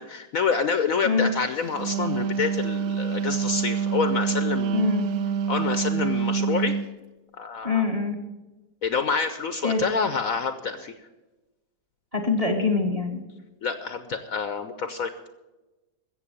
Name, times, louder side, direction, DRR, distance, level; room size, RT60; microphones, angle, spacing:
voice 1, 0.0-4.9 5.5-6.7 7.4-7.8 8.8-10.9 13.6-15.1, left 5 dB, 60° left, 9 dB, 1.0 m, -27 dB
Wind instrument woodwind instrument, 1.6-6.9, right 7 dB, 65° right, 1.1 m, -26 dB
voice 2, 4.7-5.1 7.6-8.2 9.6-9.8 12.1-13.2, left 4 dB, 20° right, 5 dB, 1.5 m, -24 dB
14.0 x 7.9 x 8.5 m, 1.1 s
omnidirectional pair, 1.9 m